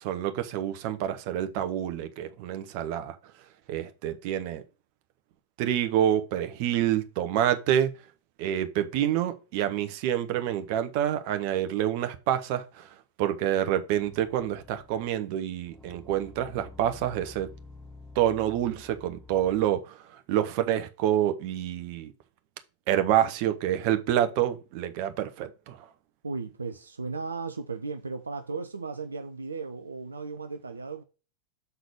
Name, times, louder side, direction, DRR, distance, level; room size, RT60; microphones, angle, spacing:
voice 1, 0.0-3.1 3.7-4.6 5.6-7.9 8.4-12.9 13.2-17.5 18.2-20.0 20.3-22.1 22.9-25.8, right 11 dB, 45° right, 0.9 m, -27 dB
sound 1, 13.9-15.1 15.7-19.8, left 3 dB, ahead, 1.3 m, -49 dB
voice 2, 26.2-31.0, right 4 dB, 75° right, 0.4 m, -36 dB
6.8 x 4.0 x 4.8 m
figure-of-eight pair, 90°, 0 cm